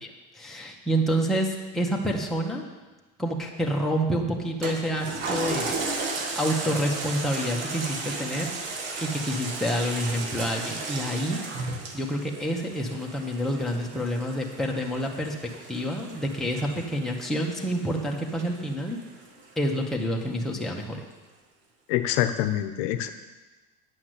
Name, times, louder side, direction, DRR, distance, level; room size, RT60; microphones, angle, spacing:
voice 1, 0.0-2.6 3.2-5.8 6.3-8.5 9.0-11.4 11.9-15.4 15.7-19.0 19.5-21.0, equal, ahead, -2 dB, 1.6 m, -28 dB
Toilet flush, 4.6-19.4 19.9-20.0, right 3 dB, 85° right, 1.7 m, -35 dB
voice 2, 21.9-23.1, left 12 dB, 75° left, 9 dB, 0.8 m, -25 dB
9.4 x 5.9 x 8.2 m, 1.2 s
supercardioid pair, 115°, 30 cm